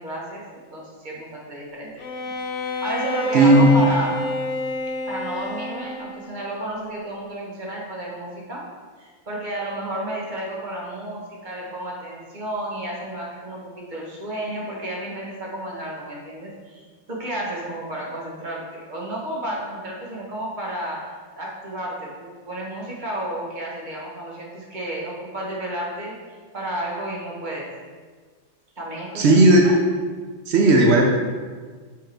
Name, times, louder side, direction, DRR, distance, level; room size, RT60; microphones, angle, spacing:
voice 1, 0.0-1.9 2.6-4.2 5.1-8.7 9.0-26.1 26.5-27.7 28.8-29.8, right 1 dB, 25° right, -4 dB, 1.3 m, -32 dB
Bowed string instrument, 2.0-6.4, left 2 dB, 85° left, 0.6 m, -28 dB
voice 2, 3.3-3.7 29.1-29.6 30.5-31.0, right 2 dB, 80° right, 0 dB, 0.6 m, -14 dB
6.5 x 6.3 x 3.5 m, 1.5 s
omnidirectional pair, 2.2 m